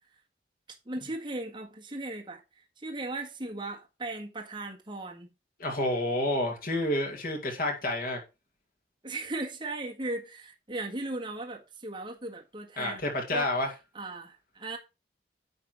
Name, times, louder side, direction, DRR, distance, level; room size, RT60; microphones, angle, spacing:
voice 1, 0.9-2.4 2.8-5.3 9.0-13.0 13.3-13.5 14.0-14.8, right 2 dB, 25° right, 1.6 m, -37 dB
voice 2, 5.6-8.2 12.8-13.7, left 1 dB, 50° left, 2.1 m, -29 dB
9.6 x 3.7 x 6.1 m
head